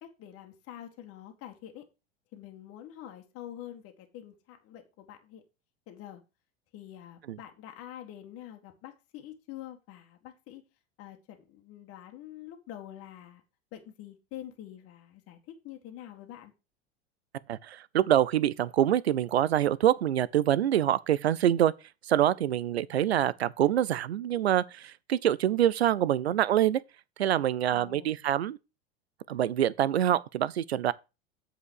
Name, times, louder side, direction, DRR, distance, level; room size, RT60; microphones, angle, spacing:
voice 1, 0.0-1.8 2.3-5.4 5.9-6.2 6.7-10.6 11.0-13.4 13.7-15.4 15.6-16.5 27.7-28.1, left 12 dB, 50° left, 2.0 m, -46 dB
voice 2, 17.5-21.7 22.0-26.8 27.2-28.6 29.3-30.9, right 11 dB, 85° right, 0.6 m, -25 dB
8.3 x 5.0 x 6.4 m
hypercardioid pair, 85°, 31 cm